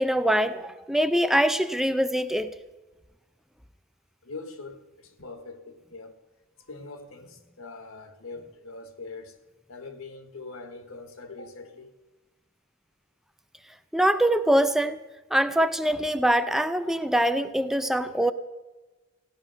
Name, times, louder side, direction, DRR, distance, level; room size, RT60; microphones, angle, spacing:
voice 1, 0.0-2.5 13.9-15.0 15.3-18.3, right 1 dB, ahead, 0.5 m, -23 dB
voice 2, 4.2-6.2 6.6-9.4 9.7-11.9, left 3 dB, 75° left, 1.7 m, -42 dB
16.0 x 11.0 x 7.7 m
head